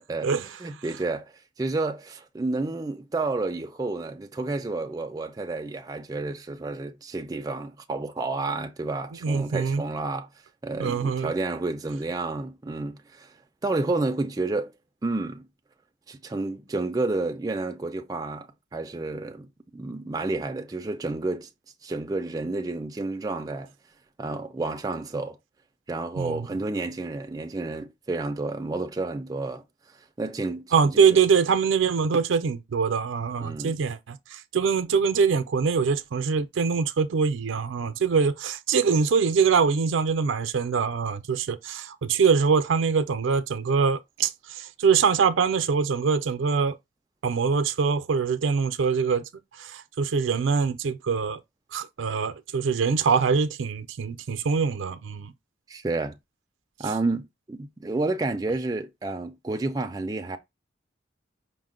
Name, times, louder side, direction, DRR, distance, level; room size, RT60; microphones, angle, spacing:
voice 1, 0.0-0.3 0.6-1.3 1.6-10.3 10.6-13.3 13.6-14.7 15.0-15.5 16.1-21.5 21.8-23.7 24.2-25.4 25.9-29.6 30.2-31.1 33.4-33.8 55.7-56.2 56.8-60.4, right 2 dB, 20° right, 0.3 m, -30 dB
voice 2, 9.2-9.8 10.8-11.3 26.2-26.5 30.7-46.8 47.2-49.2 49.6-51.4 51.7-55.3, right 5 dB, 85° right, 0.4 m, -24 dB
5.1 x 2.1 x 3.7 m
head